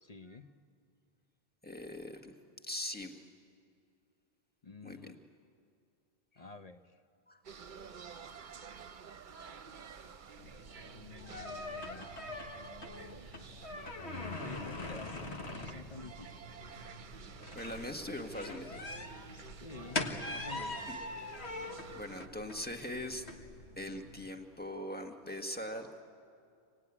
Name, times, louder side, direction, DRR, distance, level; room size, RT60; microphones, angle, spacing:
voice 1, 0.0-0.5 4.6-5.2 6.4-7.0 10.8-12.1 14.1-16.4 19.3-20.9, left 3 dB, 40° left, 8 dB, 0.8 m, -50 dB
voice 2, 1.6-2.3 2.6-3.2 4.8-5.0 7.3-7.4 12.2-12.3 17.5-18.8 20.9-21.0 21.9-23.2 23.8-26.0, left 1 dB, 10° left, 4 dB, 1.5 m, -41 dB
sound 1, 7.4-22.3, right 6 dB, 55° right, 0.9 m, -51 dB
sound 2, 10.4-24.2, left 2 dB, 90° left, 1.9 m, -43 dB
25.5 x 19.0 x 9.8 m, 2.3 s
omnidirectional pair, 1.1 m